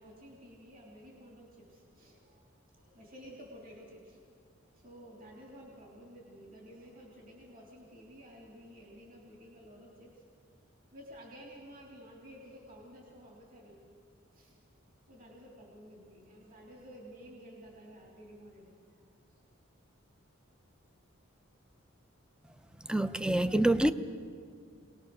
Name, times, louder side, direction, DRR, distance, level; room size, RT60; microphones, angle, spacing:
voice 1, 0.0-2.5 2.7-4.2 4.7-10.2 10.9-13.9 14.3-14.6 15.1-19.0 19.3-19.5, equal, 45° right, -1 dB, 3.1 m, -52 dB
voice 2, 22.9-23.9, right 1 dB, 5° right, 11 dB, 0.5 m, -26 dB
24.5 x 19.0 x 6.6 m, 2.2 s
head